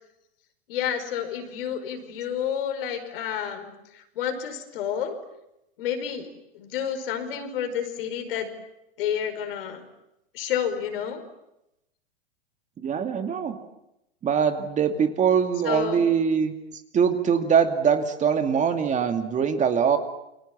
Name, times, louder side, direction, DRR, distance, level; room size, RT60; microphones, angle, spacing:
voice 1, 0.7-3.7 3.9-5.2 5.8-6.3 6.5-8.5 9.0-9.8 10.3-11.2 15.6-16.0, left 9 dB, 60° left, 7 dB, 5.2 m, -30 dB
voice 2, 12.8-13.6 14.2-16.5 16.9-20.0, right 7 dB, 25° right, 7 dB, 2.4 m, -22 dB
29.0 x 23.0 x 7.5 m, 0.87 s
hypercardioid pair, 105°, 31 cm